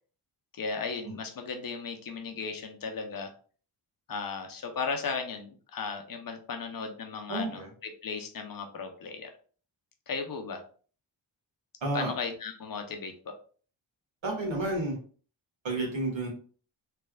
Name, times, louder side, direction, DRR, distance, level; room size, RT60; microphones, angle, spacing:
voice 1, 0.5-3.3 4.1-9.3 10.1-10.6 11.9-13.4, left 5 dB, 50° left, 5 dB, 0.7 m, -36 dB
voice 2, 7.3-7.7 11.8-12.1 14.2-15.0 15.6-16.3, right 1 dB, 85° right, -1 dB, 1.7 m, -30 dB
3.3 x 3.3 x 2.3 m, 0.41 s
wide cardioid pair, 130°, 45 cm